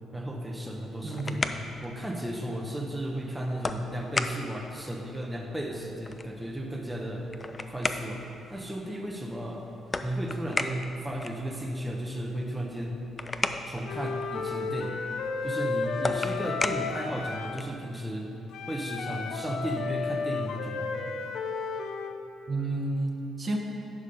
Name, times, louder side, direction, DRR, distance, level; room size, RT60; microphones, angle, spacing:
voice 1, 0.1-1.4 1.8-7.3 7.7-8.2 8.5-9.6 10.0-13.0 13.7-15.0 15.4-18.3 18.7-20.9, right 1 dB, 5° right, -1 dB, 0.9 m, -34 dB
sound 1, 0.9-17.8, left 3 dB, 25° left, 0.4 m, -37 dB
voice 2, 1.0-1.4 22.5-23.6, right 2 dB, 40° right, 1 dB, 1.0 m, -30 dB
Wind instrument woodwind instrument, 13.8-17.7 18.5-22.2, left 5 dB, 80° left, 0.5 m, -33 dB
10.5 x 5.2 x 5.4 m, 3.0 s
cardioid pair, 90°, 0 cm